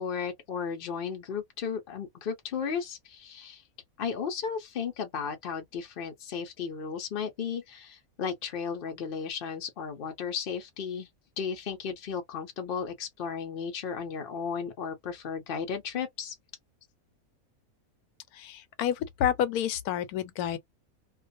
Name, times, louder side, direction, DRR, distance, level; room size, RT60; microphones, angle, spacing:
voice 1, 0.0-3.6 4.0-11.1 11.4-16.4, left 6 dB, 55° left, 0.6 m, -34 dB
voice 2, 18.3-20.6, left 10 dB, 85° left, 1.1 m, -29 dB
2.3 x 2.3 x 2.5 m
omnidirectional pair, 1.5 m